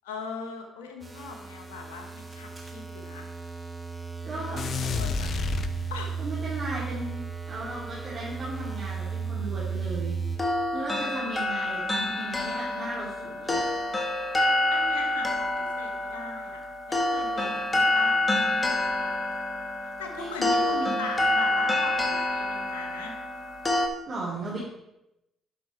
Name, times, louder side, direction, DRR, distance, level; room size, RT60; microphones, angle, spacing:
voice 1, 0.0-3.3 4.5-5.3 5.9-6.2 14.7-18.2 18.5-19.1 20.0-23.1 24.6-24.7, left 4 dB, 85° left, 3 dB, 1.3 m, -40 dB
sound 1, 1.0-10.4, right 6 dB, 20° right, 2.2 m, -35 dB
voice 2, 4.2-4.6 6.2-7.2 7.5-10.1 10.7-13.6 20.1-21.1 24.1-24.7, right 2 dB, 45° right, -7 dB, 3.0 m, -36 dB
sound 2, 4.6-6.3, left 5 dB, 55° left, 0.6 m, -30 dB
sound 3, 10.4-23.9, left 1 dB, 25° left, 1.9 m, -27 dB
10.5 x 6.1 x 4.4 m, 0.88 s
hypercardioid pair, 50°, 0 cm